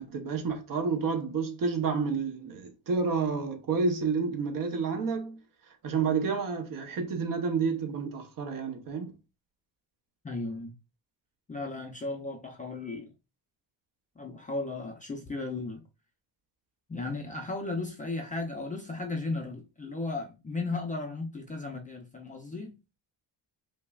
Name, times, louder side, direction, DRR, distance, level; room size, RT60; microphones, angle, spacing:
voice 1, 0.0-5.4 5.8-9.1, right 5 dB, 50° right, 0.8 m, -30 dB
voice 2, 10.2-10.7 11.5-13.1 14.2-15.8 16.9-22.7, left 3 dB, 20° left, 0.4 m, -35 dB
5.3 x 2.1 x 2.3 m
cardioid pair, 145°, 44 cm